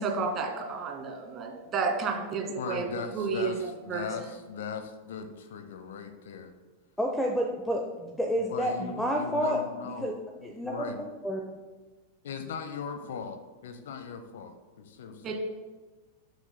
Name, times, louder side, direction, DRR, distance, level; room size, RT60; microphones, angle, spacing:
voice 1, 0.0-4.3 15.2-15.3, right 4 dB, 30° right, 2 dB, 1.9 m, -32 dB
voice 2, 2.6-6.5 8.4-10.1 10.4-11.0 12.2-15.3, left 6 dB, 60° left, 8 dB, 0.9 m, -39 dB
voice 3, 7.0-9.6 10.0-10.1 10.4-11.5, equal, 5° left, 1 dB, 0.8 m, -30 dB
17.5 x 6.6 x 2.2 m, 1.3 s
figure-of-eight pair, 90°, 0 cm